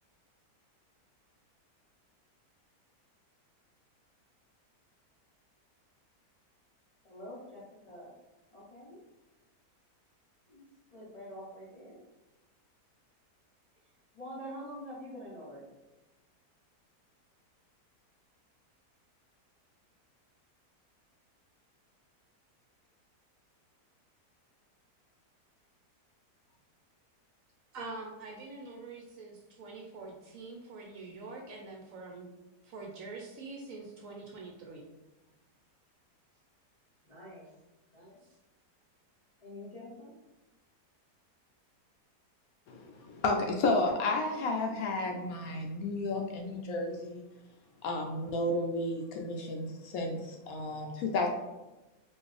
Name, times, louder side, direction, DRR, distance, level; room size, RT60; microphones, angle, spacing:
voice 1, 7.1-8.1 8.5-9.0 10.5-10.7 10.9-12.0 14.1-15.6 37.1-37.5 37.9-38.2 39.4-40.1, equal, 40° left, -6 dB, 0.5 m, -46 dB
voice 2, 27.7-32.3 32.6-34.8, right 3 dB, 65° right, 1 dB, 0.9 m, -45 dB
voice 3, 42.7-47.2 47.8-51.3, left 2 dB, 70° left, 2 dB, 0.9 m, -32 dB
4.4 x 2.5 x 3.2 m, 1.1 s
omnidirectional pair, 1.8 m